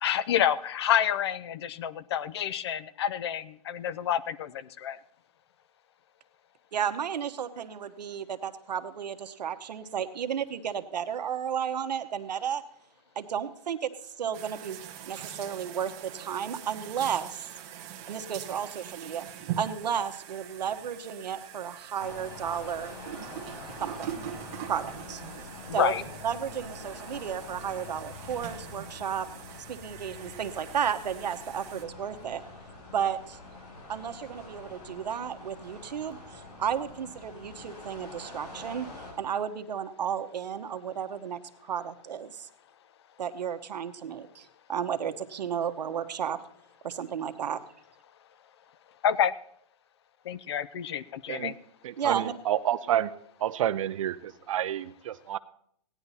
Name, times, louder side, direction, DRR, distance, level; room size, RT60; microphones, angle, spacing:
voice 1, 0.0-5.0 25.7-26.0 49.0-49.3 50.2-51.6, left 9 dB, 40° left, 18 dB, 0.5 m, -28 dB
voice 2, 6.7-12.6 13.2-13.9 14.2-17.5 18.1-19.3 19.6-22.9 23.8-24.3 24.7-25.2 25.7-25.9 26.2-29.3 29.7-32.4 32.9-33.4 33.9-38.9 39.2-42.5 43.2-46.4 46.8-47.6 52.0-52.3, right 8 dB, 80° right, 9 dB, 1.1 m, -33 dB
sound 1, 14.3-31.8, right 10 dB, 25° right, 1.1 m, -43 dB
sound 2, 22.0-39.1, left 2 dB, 70° left, 6.9 m, -45 dB
voice 3, 51.8-53.1 53.4-55.4, right 11 dB, 50° right, 13 dB, 0.6 m, -29 dB
16.5 x 10.0 x 4.1 m, 0.68 s
hypercardioid pair, 160°, 21 cm